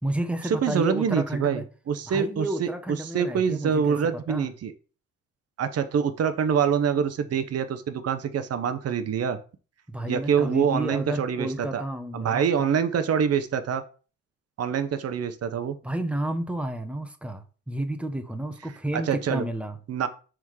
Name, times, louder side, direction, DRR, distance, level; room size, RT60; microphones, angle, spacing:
voice 1, 0.0-1.7 2.1-4.5 9.9-12.7 15.8-19.8, right 1 dB, 5° right, 1.0 m, -31 dB
voice 2, 0.6-4.7 5.6-9.4 10.1-11.8 12.1-13.8 14.6-15.8 18.9-19.4 19.9-20.1, right 7 dB, 55° right, 1.0 m, -25 dB
6.2 x 3.6 x 4.7 m
cardioid pair, 90°, 30 cm